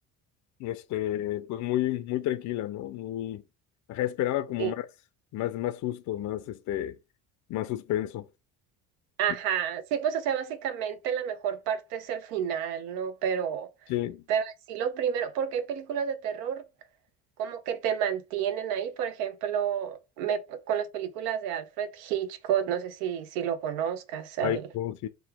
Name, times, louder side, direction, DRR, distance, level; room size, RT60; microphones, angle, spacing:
voice 1, 0.6-3.4 3.9-4.9 5.3-6.9 7.5-8.3 13.9-14.2 24.4-25.1, left 13 dB, 40° left, 0.4 m, -31 dB
voice 2, 9.2-13.7 14.3-16.6 17.4-24.6, right 8 dB, 85° right, 0.6 m, -30 dB
3.1 x 2.3 x 3.3 m
hypercardioid pair, 75°, 46 cm